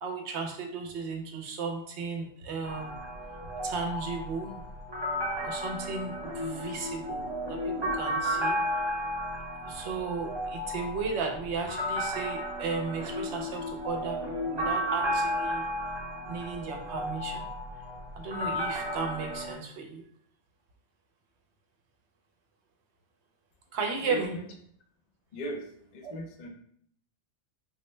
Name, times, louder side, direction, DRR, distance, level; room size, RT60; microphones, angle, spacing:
voice 1, 0.0-2.9 3.6-4.6 5.4-8.6 9.7-15.6 16.3-17.5 18.2-20.0 23.7-24.3 26.0-26.1, right 4 dB, 70° right, 3 dB, 0.8 m, -35 dB
sound 1, 2.6-19.5, equal, 30° right, 0.5 m, -33 dB
voice 2, 24.0-24.5 25.3-26.5, equal, 55° left, 3 dB, 0.4 m, -38 dB
4.2 x 2.1 x 3.0 m, 0.65 s
omnidirectional pair, 1.3 m